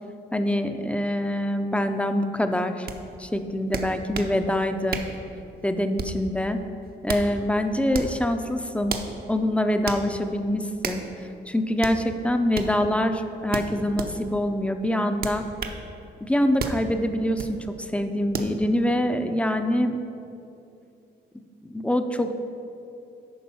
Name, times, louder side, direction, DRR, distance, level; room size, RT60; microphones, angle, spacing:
voice 1, 0.3-2.9 3.2-5.0 5.6-6.6 7.0-9.0 9.3-11.0 11.5-15.4 16.2-20.0 21.6-22.3, left 1 dB, 5° left, 7 dB, 0.5 m, -25 dB
sound 1, 2.9-3.0 3.7-4.3 4.9-5.2 6.0-6.3 6.8-7.3 7.9-8.2 8.9-9.1 9.9-10.0 10.8-11.1 11.8-12.0 12.5-12.7 13.5-14.1 15.2-15.8 16.6-16.8 17.4-17.5 18.3-18.5, right 5 dB, 50° right, 0.7 m, -31 dB
8.6 x 5.3 x 5.5 m, 2.7 s
cardioid pair, 90°, 20 cm